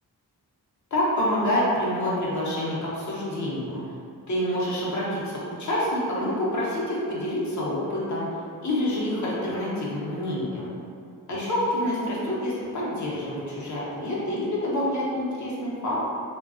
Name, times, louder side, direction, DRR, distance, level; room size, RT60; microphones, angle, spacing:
voice 1, 0.9-3.8 4.3-8.3 8.6-10.8 11.3-16.0, left 1 dB, 50° left, -7 dB, 0.7 m, -27 dB
3.2 x 2.2 x 2.5 m, 2.4 s
wide cardioid pair, 145°, 38 cm